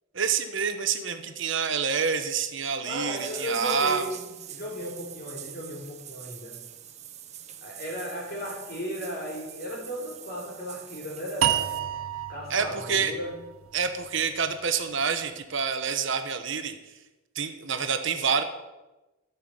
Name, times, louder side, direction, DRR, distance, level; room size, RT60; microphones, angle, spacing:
voice 1, 0.1-4.1 12.5-13.1 13.7-16.8 17.3-18.4, right 6 dB, 60° right, 8 dB, 1.0 m, -27 dB
voice 2, 2.8-6.6 7.6-11.7 12.3-13.3, equal, 45° left, -1 dB, 3.8 m, -35 dB
sound 1, 3.2-11.8, right 10 dB, 30° right, 0.7 m, -44 dB
sound 2, 11.4-14.6, right 11 dB, 80° right, 0.6 m, -30 dB
12.5 x 5.7 x 7.8 m, 1.1 s
head